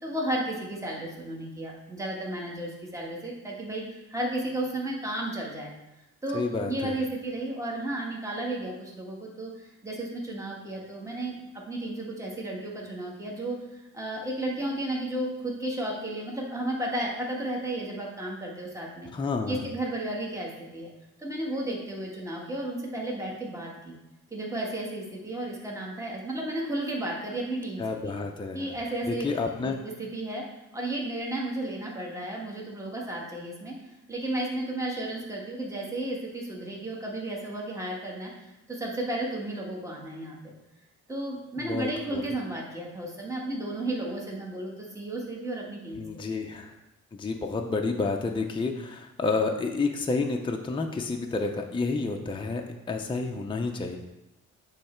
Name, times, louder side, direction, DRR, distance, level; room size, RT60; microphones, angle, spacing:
voice 1, 0.0-5.7 6.2-11.3 11.7-19.1 19.5-20.9 21.2-24.0 24.3-28.1 28.5-29.4 29.6-30.4 30.7-33.8 34.1-40.5 41.1-46.2, right 1 dB, 10° right, -2 dB, 1.5 m, -33 dB
voice 2, 6.3-7.0 19.1-19.6 27.8-28.7 29.1-29.8 41.6-42.2 45.9-46.7 47.1-52.6 52.9-54.0, left 3 dB, 15° left, 2 dB, 0.6 m, -30 dB
8.4 x 3.3 x 4.4 m, 0.93 s
cardioid pair, 90°, 30 cm